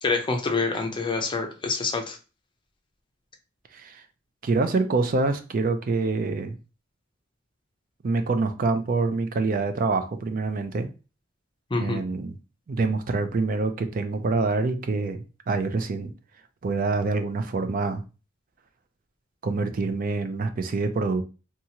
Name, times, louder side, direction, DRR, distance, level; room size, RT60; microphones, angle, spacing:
voice 1, 0.0-2.2 11.7-12.0, left 3 dB, 25° left, 4 dB, 0.5 m, -26 dB
voice 2, 4.4-6.6 8.0-10.9 11.8-12.3 12.7-16.1 16.6-18.0 19.4-21.2, right 3 dB, 45° right, 9 dB, 0.4 m, -26 dB
2.8 x 2.3 x 2.8 m, 0.32 s
head